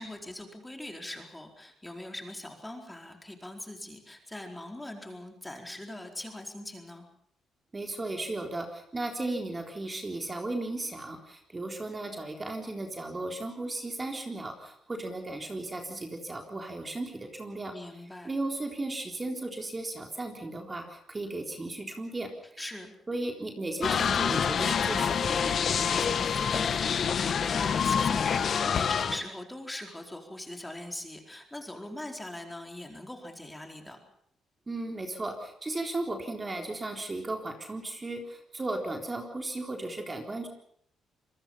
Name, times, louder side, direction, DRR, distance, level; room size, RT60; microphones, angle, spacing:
voice 1, 0.0-7.1 17.7-18.3 22.6-22.9 25.8-34.0, left 1 dB, 10° left, 3 dB, 4.5 m, -41 dB
voice 2, 7.7-17.7 18.2-22.3 23.1-25.6 34.7-40.5, right 2 dB, 25° right, 3 dB, 3.8 m, -35 dB
sound 1, 23.8-29.2, left 7 dB, 55° left, 1.6 m, -27 dB
27.0 x 21.5 x 5.7 m, 0.68 s
cardioid pair, 90°, 0 cm